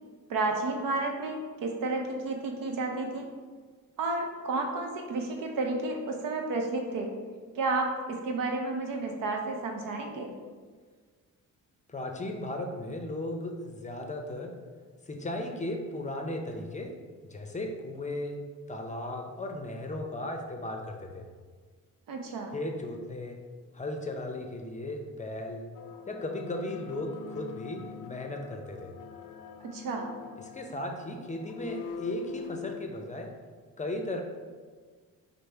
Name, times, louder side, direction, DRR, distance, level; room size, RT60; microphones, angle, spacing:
voice 1, 0.3-3.3 4.0-7.1 7.5-10.3 22.1-22.5 29.6-30.1, right 3 dB, 80° right, 2 dB, 0.7 m, -31 dB
voice 2, 11.9-14.5 15.1-16.9 17.3-18.4 18.7-21.2 22.5-23.4 23.7-25.6 26.1-28.9 30.4-33.3 33.8-34.2, left 1 dB, 20° left, 3 dB, 0.5 m, -36 dB
sound 1, 25.7-32.9, left 6 dB, 70° left, 0.5 m, -44 dB
5.2 x 2.0 x 4.4 m, 1.5 s
cardioid pair, 90°, 33 cm